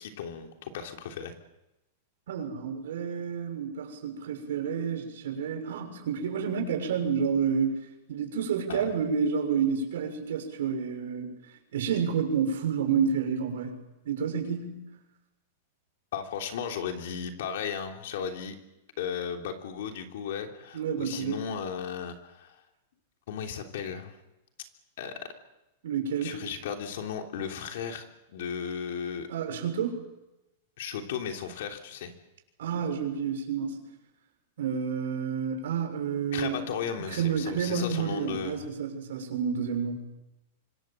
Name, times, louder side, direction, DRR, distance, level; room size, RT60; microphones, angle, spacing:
voice 1, 0.0-1.3 8.7-8.8 16.1-18.6 19.0-22.6 23.3-24.2 25.0-25.2 26.2-29.3 30.8-32.1 36.3-38.7, left 7 dB, 60° left, 4 dB, 3.2 m, -35 dB
voice 2, 2.3-7.8 8.1-11.3 11.7-14.9 20.7-21.4 25.8-26.4 29.3-30.0 32.6-33.8 34.6-36.6 37.0-39.9, right 6 dB, 75° right, 5 dB, 6.5 m, -29 dB
27.5 x 25.0 x 7.7 m, 0.97 s
supercardioid pair, 180°, 0 cm